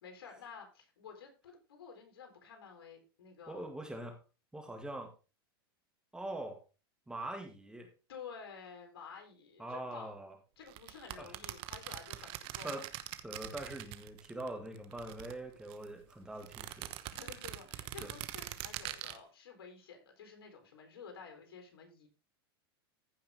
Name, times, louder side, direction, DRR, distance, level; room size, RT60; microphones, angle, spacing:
voice 1, 0.0-3.7 8.1-10.1 10.6-12.8 17.1-22.1, left 6 dB, 80° left, 4 dB, 3.8 m, -51 dB
voice 2, 3.5-4.2 4.5-5.1 6.1-6.6 7.1-7.9 9.6-10.3 11.2-11.3 12.6-12.8 13.2-16.9 18.0-18.1, right 1 dB, 5° right, 4 dB, 2.1 m, -43 dB
sound 1, 10.7-14.5 14.8-15.9 16.4-19.2, right 15 dB, 45° right, 1.0 m, -43 dB
15.0 x 5.6 x 3.6 m, 0.32 s
hypercardioid pair, 120°, 13 cm